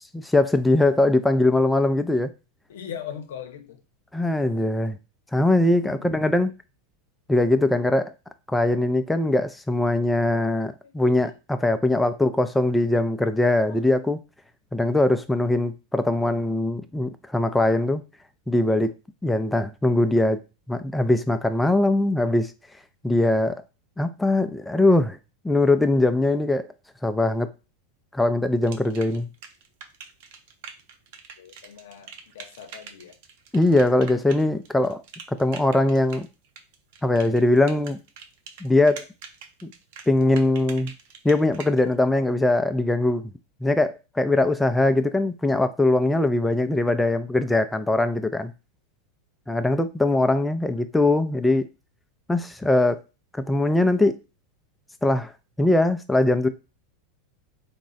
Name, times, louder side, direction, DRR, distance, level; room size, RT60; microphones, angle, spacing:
voice 1, 0.0-2.3 4.1-5.0 5.3-6.5 7.3-8.1 8.5-14.2 14.7-18.0 18.5-18.9 19.2-20.4 20.7-22.5 23.0-23.6 24.0-25.2 25.4-26.7 27.0-27.5 28.1-29.3 33.5-35.0 35.3-36.3 37.0-38.0 38.6-39.1 39.6-39.7 40.1-40.9 41.2-43.3 43.6-48.5 49.5-51.7 52.3-53.0 53.5-54.2 55.0-55.3 55.6-56.5, left 2 dB, 5° left, 0.3 m, -21 dB
voice 2, 2.7-3.8 5.8-6.1 10.8-11.2 11.6-11.8 13.7-13.8 31.4-33.2, left 8 dB, 80° left, 0.7 m, -40 dB
sound 1, 28.6-41.8, right 6 dB, 65° right, 0.6 m, -44 dB
3.5 x 2.1 x 4.0 m
supercardioid pair, 135°, 0 cm